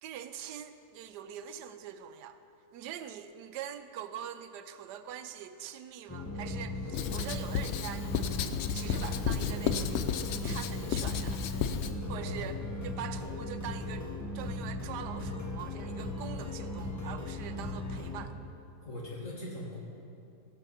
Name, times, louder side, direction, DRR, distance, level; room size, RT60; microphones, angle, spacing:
voice 1, 0.0-2.4 2.7-8.3 8.7-10.0 10.4-11.7 12.1-12.6 12.8-14.1 14.3-18.4, right 9 dB, 90° right, 10 dB, 1.2 m, -43 dB
sound 1, 6.1-18.3, left 2 dB, 15° left, 0.6 m, -38 dB
Writing, 6.9-11.9, left 7 dB, 85° left, 0.5 m, -33 dB
voice 2, 12.2-12.5 18.8-19.8, left 1 dB, 50° left, -3 dB, 2.4 m, -41 dB
17.0 x 6.1 x 5.7 m, 2.8 s
omnidirectional pair, 1.7 m